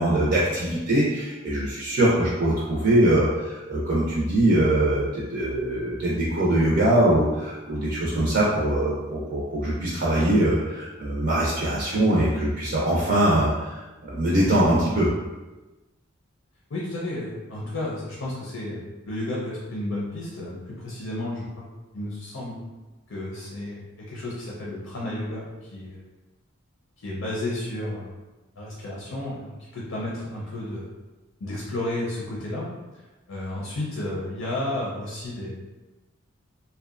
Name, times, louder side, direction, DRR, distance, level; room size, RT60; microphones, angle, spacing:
voice 1, 0.0-15.1, right 1 dB, 55° right, -6 dB, 0.5 m, -22 dB
voice 2, 0.7-1.0 16.7-21.6 21.9-22.6 23.1-26.0 27.0-28.1 28.6-30.9 31.4-32.7 33.3-35.6, left 1 dB, 85° left, -5 dB, 0.6 m, -32 dB
2.7 x 2.1 x 2.4 m, 1.1 s
head